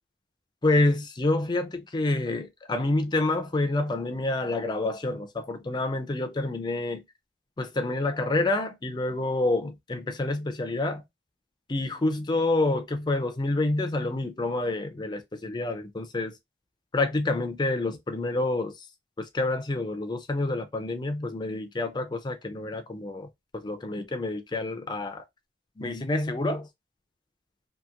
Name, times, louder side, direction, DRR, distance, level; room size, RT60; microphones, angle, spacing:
voice 1, 0.6-7.0 7.6-11.0 11.7-16.4 16.9-18.9 19.2-23.3 23.5-25.2 25.8-26.7, left 2 dB, 25° left, 0.4 m, -28 dB
2.8 x 2.5 x 2.4 m
head